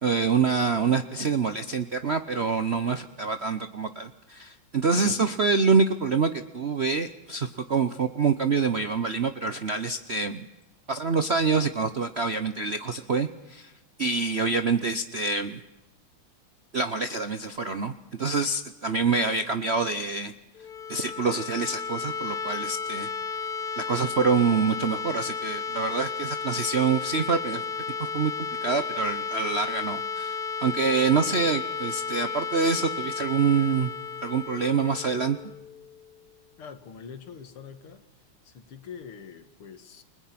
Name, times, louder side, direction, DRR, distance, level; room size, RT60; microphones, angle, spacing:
voice 1, 0.0-10.5 10.9-13.7 14.0-15.6 16.7-17.9 18.2-20.3 20.9-23.1 23.8-28.3 28.6-33.9 34.2-35.4, right 4 dB, 60° right, 10 dB, 0.7 m, -26 dB
sound 1, 20.5-36.3, left 5 dB, 70° left, 0.5 m, -33 dB
voice 2, 36.6-38.0 38.4-40.0, left 6 dB, 85° left, 10 dB, 2.6 m, -44 dB
29.5 x 20.5 x 5.9 m, 0.97 s
omnidirectional pair, 2.3 m